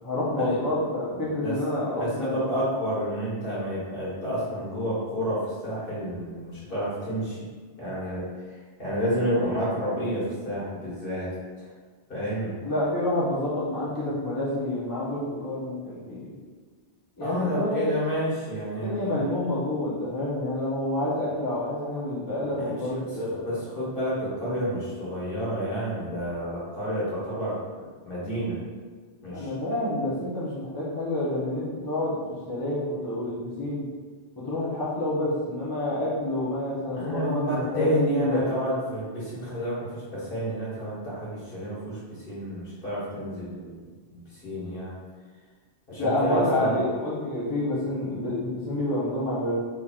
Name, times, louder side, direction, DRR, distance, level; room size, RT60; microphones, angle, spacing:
voice 1, 0.0-2.5 12.6-16.3 17.2-17.9 18.8-23.5 29.3-32.2 32.5-33.9 34.4-38.5 46.0-49.5, left 1 dB, 20° left, -8 dB, 0.7 m, -28 dB
voice 2, 1.1-1.5 1.9-7.4 7.8-11.3 11.6-11.7 12.1-12.5 17.2-19.3 22.6-23.0 23.4-28.6 29.2-29.5 36.9-43.8 44.1-44.9 45.9-46.8, equal, 55° left, -9 dB, 1.6 m, -30 dB
4.2 x 3.3 x 2.4 m, 1.4 s
omnidirectional pair, 1.2 m